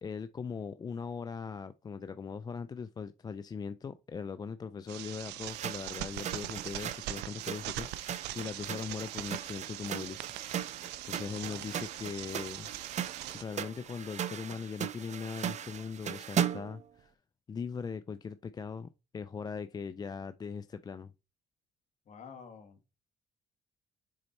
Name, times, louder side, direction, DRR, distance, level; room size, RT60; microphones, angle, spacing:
voice 1, 0.0-10.4 11.1-12.7 13.3-17.1 17.5-21.1, left 6 dB, 25° left, 0.4 m, -40 dB
sound 1, 4.9-13.4, right 14 dB, 85° right, 0.6 m, -42 dB
sound 2, 5.5-16.8, right 9 dB, 45° right, 0.6 m, -38 dB
voice 2, 11.2-11.8 22.1-22.8, left 6 dB, 45° left, 1.5 m, -50 dB
6.4 x 4.1 x 4.2 m
cardioid pair, 110°, 17 cm